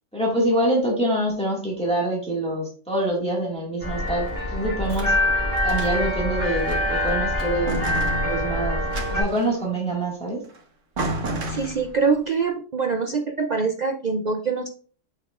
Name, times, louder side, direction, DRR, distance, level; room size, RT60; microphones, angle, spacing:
voice 1, 0.1-4.3 4.5-5.1 5.6-7.8 8.2-10.4, right 1 dB, 5° left, -3 dB, 1.7 m, -25 dB
sound 1, 3.8-9.2, left 1 dB, 15° right, 2.0 m, -25 dB
sound 2, 3.8-5.2 5.6-6.2 6.6-7.1 7.4-9.6 10.5-10.6 11.0-12.1, right 1 dB, 80° right, 1.5 m, -32 dB
voice 2, 11.5-14.7, right 5 dB, 60° right, 5 dB, 0.4 m, -24 dB
6.9 x 6.3 x 2.4 m, 0.42 s
omnidirectional pair, 1.3 m